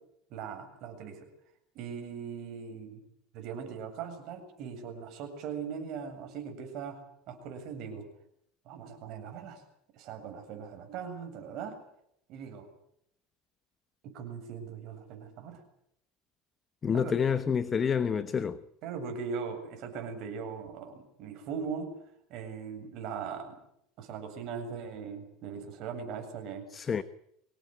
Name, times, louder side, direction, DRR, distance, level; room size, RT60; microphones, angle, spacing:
voice 1, 0.3-1.3 1.7-3.0 3.3-8.1 8.6-9.6 9.9-11.8 12.3-12.7 14.0-15.6 16.9-17.2 18.8-21.9 22.3-23.6 24.0-26.7, right 6 dB, 50° right, 7.7 m, -40 dB
voice 2, 16.8-18.6 26.7-27.0, left 7 dB, 25° left, 1.0 m, -28 dB
25.5 x 18.0 x 9.3 m
cardioid pair, 150°, 0 cm